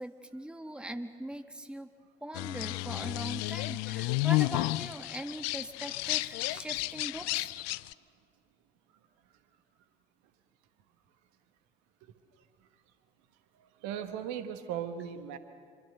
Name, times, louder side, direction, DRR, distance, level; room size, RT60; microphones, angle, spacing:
voice 1, 0.0-1.9 2.2-7.5, right 1 dB, 5° right, 8 dB, 1.5 m, -41 dB
sound 1, 2.3-7.9, left 19 dB, 55° left, 0.5 m, -32 dB
voice 2, 13.6-15.4, right 9 dB, 60° right, 9 dB, 1.5 m, -38 dB
26.0 x 23.0 x 6.8 m, 2.4 s
figure-of-eight pair, 50°, 31 cm